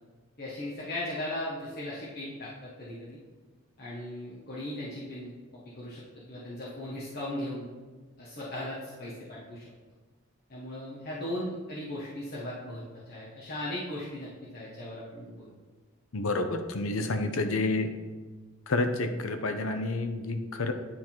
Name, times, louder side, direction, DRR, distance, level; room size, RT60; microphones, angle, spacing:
voice 1, 0.4-3.2 3.8-5.3 5.7-6.0 6.3-7.7 8.2-9.6 10.5-15.5, left 1 dB, 45° left, -7 dB, 1.3 m, -37 dB
voice 2, 16.1-17.9 18.7-20.7, left 2 dB, 80° left, 7 dB, 0.8 m, -29 dB
10.0 x 3.9 x 4.4 m, 1.3 s
head